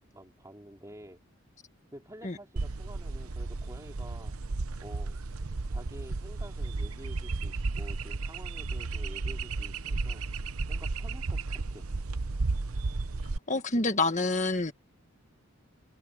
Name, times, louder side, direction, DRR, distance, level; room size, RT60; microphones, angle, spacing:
voice 1, 0.1-1.2 1.9-4.3 4.8-5.2 5.7-10.2 10.7-11.9, right 1 dB, 15° right, 3.2 m, -49 dB
sound 1, 2.6-13.4, right 3 dB, 90° right, 0.9 m, -33 dB
voice 2, 13.5-14.7, left 3 dB, 35° left, 1.7 m, -27 dB
head